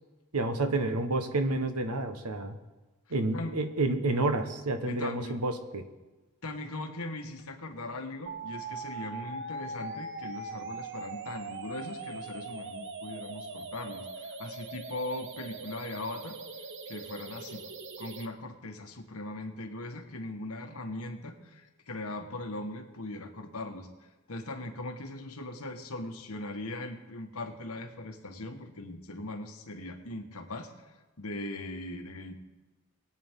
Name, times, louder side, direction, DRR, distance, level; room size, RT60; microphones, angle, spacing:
voice 1, 0.3-2.5 3.1-5.8, right 2 dB, 90° right, 8 dB, 1.2 m, -29 dB
voice 2, 4.8-5.4 6.4-16.4 16.9-17.6 18.0-23.9 24.3-32.3, left 2 dB, 75° left, 4 dB, 1.4 m, -40 dB
sound 1, 8.3-18.3, right 3 dB, 55° right, 0.9 m, -41 dB
22.0 x 8.7 x 3.7 m, 1.2 s
head